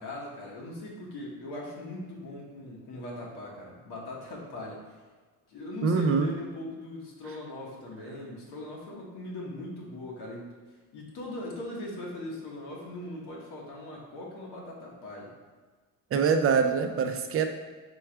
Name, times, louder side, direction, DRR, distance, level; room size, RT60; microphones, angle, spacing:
voice 1, 0.0-5.0 5.5-10.5 10.9-15.3, left 1 dB, 80° left, -4 dB, 1.2 m, -40 dB
voice 2, 5.8-6.3 16.1-17.5, right 5 dB, 35° right, 6 dB, 0.4 m, -24 dB
4.6 x 2.3 x 4.4 m, 1.4 s
cardioid pair, 110°, 39 cm